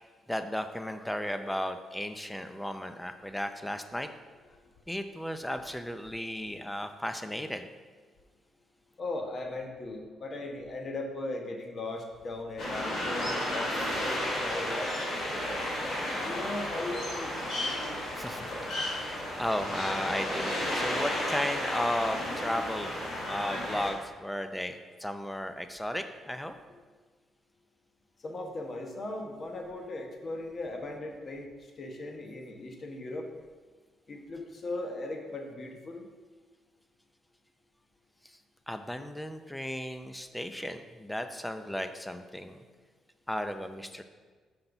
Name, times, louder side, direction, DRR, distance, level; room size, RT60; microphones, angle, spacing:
voice 1, 0.3-4.1 4.9-7.7 18.2-26.6 38.2-38.4 38.7-42.6 43.3-44.0, left 1 dB, 5° left, 8 dB, 0.6 m, -35 dB
voice 2, 9.0-14.9 16.2-17.6 28.2-31.5 31.8-33.3 34.1-36.1, left 2 dB, 45° left, 3 dB, 1.1 m, -38 dB
sound 1, 12.6-23.9, left 1 dB, 65° left, 2.4 m, -33 dB
5.8 x 5.3 x 5.9 m, 1.4 s
cardioid pair, 90°, 0 cm